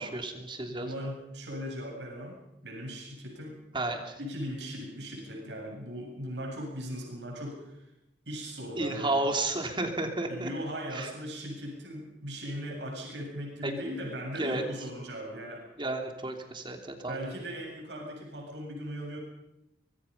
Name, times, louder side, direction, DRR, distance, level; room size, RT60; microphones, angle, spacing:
voice 1, 0.0-0.9 3.7-4.1 8.8-10.5 10.9-11.1 13.6-13.7 14.4-14.6 15.8-16.8 17.0-17.3, right 2 dB, 25° right, 4 dB, 3.1 m, -32 dB
voice 2, 0.6-3.6 4.2-7.9 8.3-9.3 10.3-15.6 17.1-19.2, equal, 75° right, 0 dB, 7.9 m, -38 dB
25.0 x 21.5 x 5.6 m, 0.90 s
head